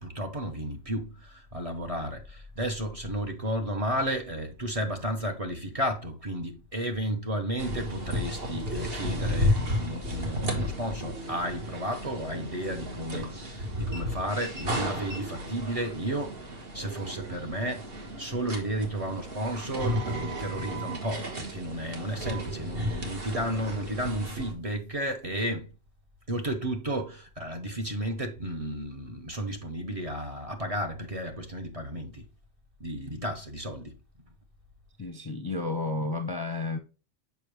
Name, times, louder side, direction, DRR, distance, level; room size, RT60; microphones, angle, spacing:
voice 1, 0.0-25.7 26.3-32.2 32.8-33.9, right 1 dB, 30° right, 0.9 m, -33 dB
sound 1, 7.6-24.5, equal, 50° right, 1.6 m, -33 dB
voice 2, 35.0-36.8, left 3 dB, 25° left, 0.6 m, -31 dB
7.1 x 5.3 x 3.0 m
omnidirectional pair, 1.3 m